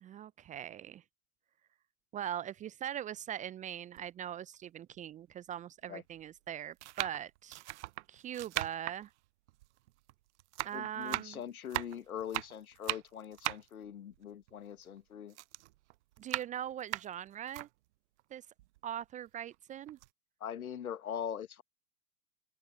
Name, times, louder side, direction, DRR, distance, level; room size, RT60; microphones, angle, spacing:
voice 1, 0.0-1.0 2.1-7.6 8.1-9.1 10.6-11.4 16.2-17.7 18.3-18.4 18.8-20.0, right 10 dB, 20° right, 0.5 m, -41 dB
sound 1, 4.0-4.1 5.0-5.1 6.0-6.3 6.8-10.1 10.4-15.0 15.3-17.7 18.2-18.3 18.6-19.6 19.9-20.1, right 18 dB, 55° right, 0.7 m, -39 dB
voice 2, 10.7-15.4 20.4-21.6, left 9 dB, 75° left, 1.7 m, -42 dB
figure-of-eight pair, 100°, 43 cm